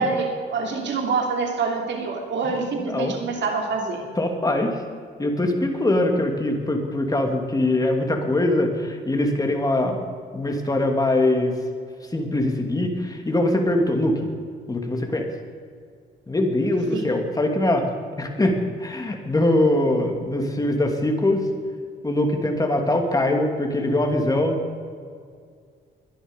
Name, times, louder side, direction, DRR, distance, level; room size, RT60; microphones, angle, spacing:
voice 1, 0.0-4.0 16.9-17.1, right 4 dB, 65° right, 2 dB, 3.0 m, -26 dB
voice 2, 4.2-4.8 5.2-10.1 10.3-11.5 12.1-14.2 14.7-15.3 16.3-17.9 18.2-18.5 18.8-21.5 22.0-24.6, left 1 dB, 20° left, 3 dB, 2.8 m, -22 dB
22.0 x 11.0 x 5.4 m, 2.1 s
cardioid pair, 90°, 20 cm